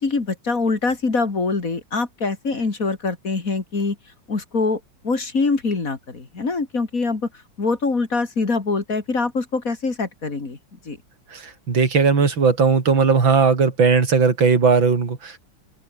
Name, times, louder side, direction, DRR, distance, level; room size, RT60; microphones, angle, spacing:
voice 1, 0.0-4.0 4.3-7.3 7.6-10.6 10.8-11.0, left 3 dB, 45° left, 3.1 m, -24 dB
voice 2, 11.7-15.5, right 5 dB, 80° right, 3.8 m, -17 dB
open air
omnidirectional pair, 2.1 m